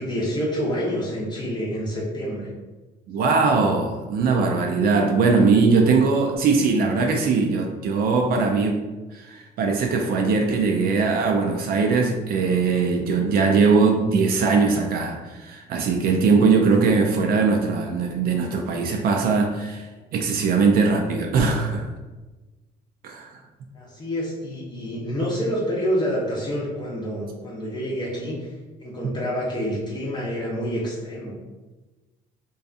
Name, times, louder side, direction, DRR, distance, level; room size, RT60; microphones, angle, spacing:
voice 1, 0.0-2.5 23.7-28.5 28.8-31.3, equal, 25° left, -5 dB, 0.6 m, -27 dB
voice 2, 3.1-8.8 9.1-21.9 23.0-23.3, right 4 dB, 65° right, 2 dB, 0.4 m, -20 dB
2.6 x 2.3 x 2.4 m, 1.2 s
cardioid pair, 110°, 17 cm